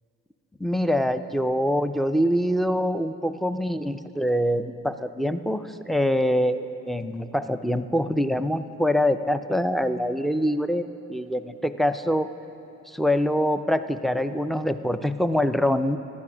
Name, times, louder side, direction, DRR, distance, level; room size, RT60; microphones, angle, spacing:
voice 1, 0.6-12.3 12.9-16.0, equal, ahead, 11 dB, 0.3 m, -24 dB
11.5 x 9.5 x 6.0 m, 2.9 s
cardioid pair, 90°, 30 cm